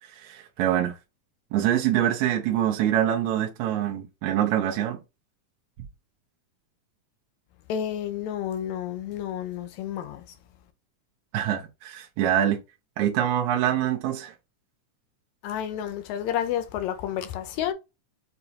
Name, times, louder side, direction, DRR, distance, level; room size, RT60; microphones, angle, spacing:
voice 1, 0.1-1.0 1.5-5.0 11.3-12.6 13.0-14.3, right 11 dB, 75° right, 2.1 m, -25 dB
voice 2, 7.7-10.2 15.4-17.7, left 10 dB, 75° left, 1.9 m, -30 dB
6.9 x 2.6 x 2.8 m
omnidirectional pair, 3.6 m